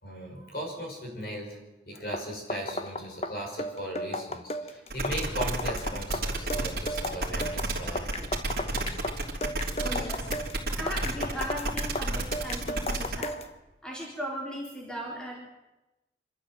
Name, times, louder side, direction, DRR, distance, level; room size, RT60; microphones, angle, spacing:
voice 1, 0.0-8.1, equal, 55° left, 1 dB, 5.7 m, -38 dB
sound 1, 2.0-13.5, left 1 dB, 35° left, 1.0 m, -35 dB
sound 2, 4.9-13.2, right 2 dB, 55° right, 3.2 m, -31 dB
voice 2, 9.8-10.3 10.8-13.4 13.8-15.3, equal, 5° left, -3 dB, 3.9 m, -37 dB
26.0 x 13.0 x 7.8 m, 1.0 s
head